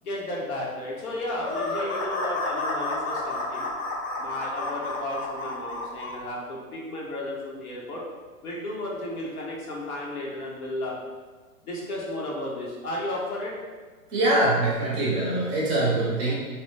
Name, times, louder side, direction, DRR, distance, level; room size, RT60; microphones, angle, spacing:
voice 1, 0.0-3.7 4.2-8.0 8.4-10.9 11.6-13.5, left 1 dB, 85° left, -4 dB, 1.0 m, -33 dB
sound 1, 1.4-6.2, left 2 dB, 45° left, 0.7 m, -30 dB
voice 2, 14.1-16.3, right 2 dB, 15° right, -5 dB, 0.5 m, -23 dB
3.0 x 2.1 x 3.1 m, 1.4 s
hypercardioid pair, 125°, 43 cm